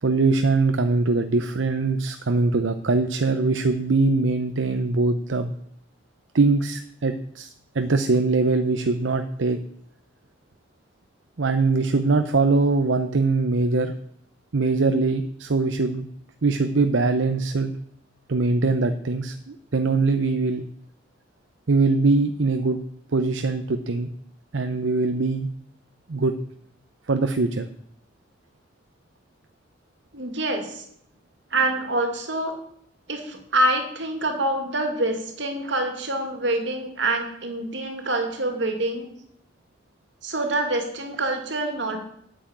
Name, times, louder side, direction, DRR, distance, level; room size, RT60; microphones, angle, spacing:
voice 1, 0.0-5.5 6.3-9.6 11.4-13.9 14.5-16.1 16.4-17.7 18.3-20.6 21.7-22.8 23.1-24.1 24.5-25.5 26.1-26.3 27.1-27.7, right 3 dB, 90° right, 9 dB, 0.7 m, -22 dB
voice 2, 30.1-30.8 31.5-32.5 33.1-39.1 40.2-42.0, right 2 dB, 70° right, 5 dB, 2.3 m, -26 dB
9.1 x 7.0 x 8.7 m, 0.73 s
head